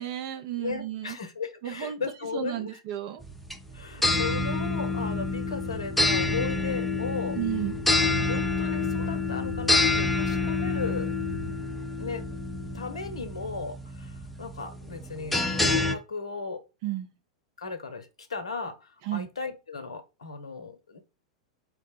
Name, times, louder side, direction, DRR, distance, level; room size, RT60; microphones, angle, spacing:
voice 1, 0.0-1.2 1.6-2.0 2.3-3.2 7.4-7.8 16.8-17.1 19.0-19.3, right 13 dB, 50° right, 0.5 m, -32 dB
voice 2, 0.6-2.8 3.7-7.4 7.9-11.1 12.0-12.3 12.7-16.6 17.6-21.0, left 4 dB, 70° left, 0.7 m, -36 dB
sound 1, 3.2-15.9, left 3 dB, 5° left, 0.5 m, -28 dB
4.1 x 2.0 x 4.4 m
figure-of-eight pair, 90°, 3 cm